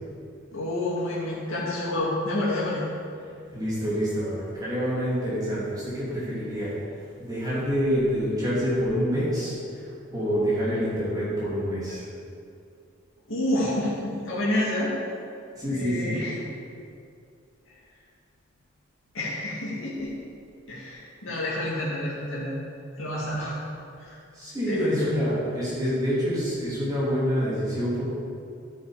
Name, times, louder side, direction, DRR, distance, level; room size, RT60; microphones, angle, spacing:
voice 1, 0.5-2.8 13.3-14.9 15.7-16.3 17.7-17.8 19.1-20.2 20.7-22.5 23.0-23.6 24.0-24.2 24.6-25.2, left 1 dB, 75° left, -7 dB, 2.3 m, -29 dB
voice 2, 3.2-6.8 7.2-12.1 15.5-16.2 24.0-24.1 24.3-28.0, equal, 20° right, -9 dB, 2.9 m, -27 dB
13.0 x 6.9 x 5.0 m, 2.4 s
head